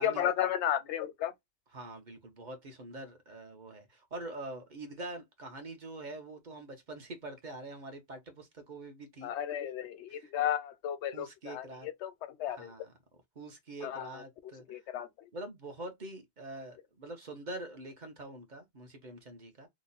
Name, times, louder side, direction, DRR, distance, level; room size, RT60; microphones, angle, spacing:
voice 1, 0.0-1.3 9.2-12.7 13.8-15.3, left 10 dB, 85° left, 0.9 m, -34 dB
voice 2, 1.7-9.3 10.1-10.3 11.1-11.9 12.6-12.9 13.4-14.8 15.3-19.7, right 2 dB, 45° right, 0.9 m, -45 dB
3.0 x 2.1 x 3.9 m
omnidirectional pair, 1.1 m